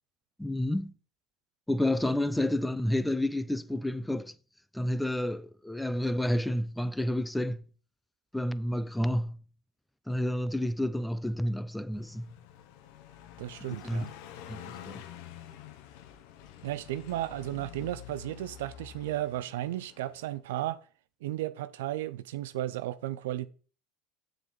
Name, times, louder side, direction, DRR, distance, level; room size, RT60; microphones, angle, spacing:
voice 1, 0.4-1.0 1.7-4.4 4.7-7.6 8.3-9.4 10.1-12.3 13.8-14.0 14.5-15.0, left 1 dB, 5° left, 0.4 m, -30 dB
Car passing by, 11.9-20.4, left 11 dB, 70° left, 0.9 m, -48 dB
voice 2, 13.4-14.1 16.6-20.8 21.2-23.5, right 14 dB, 80° right, 0.5 m, -34 dB
7.2 x 4.0 x 6.0 m
supercardioid pair, 100°, 0 cm